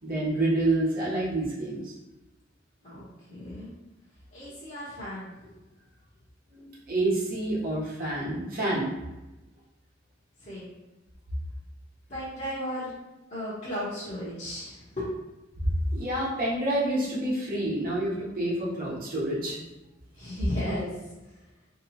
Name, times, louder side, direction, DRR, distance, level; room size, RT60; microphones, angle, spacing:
voice 1, 0.0-1.9 6.5-8.9 15.6-19.6, right 1 dB, 50° right, -7 dB, 1.1 m, -28 dB
voice 2, 2.8-3.7 4.3-5.5 10.4-10.7 12.1-12.9 13.3-15.1 20.1-21.4, left 1 dB, 40° left, -11 dB, 1.0 m, -35 dB
3.3 x 2.9 x 2.8 m, 1.0 s
head